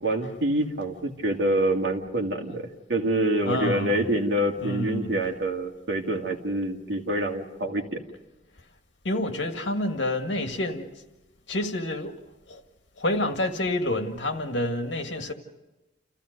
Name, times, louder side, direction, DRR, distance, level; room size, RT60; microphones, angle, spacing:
voice 1, 0.0-8.0, right 1 dB, 75° right, 2.2 m, -26 dB
voice 2, 3.4-4.1 4.6-5.2 9.1-10.9 11.5-12.1 12.5-12.6 13.0-15.3, left 1 dB, 80° left, 1.8 m, -28 dB
29.0 x 15.0 x 6.6 m
head